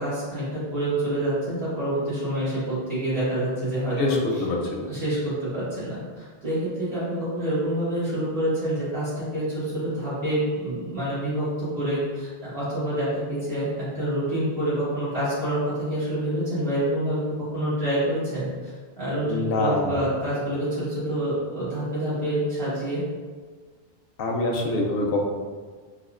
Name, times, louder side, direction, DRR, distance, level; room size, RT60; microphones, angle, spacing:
voice 1, 0.0-4.2 4.9-23.0, right 1 dB, 75° right, -12 dB, 1.8 m, -27 dB
voice 2, 4.0-4.9 19.3-20.0 24.2-25.3, left 2 dB, 70° left, 0 dB, 0.7 m, -25 dB
4.1 x 2.4 x 2.4 m, 1.5 s
omnidirectional pair, 1.0 m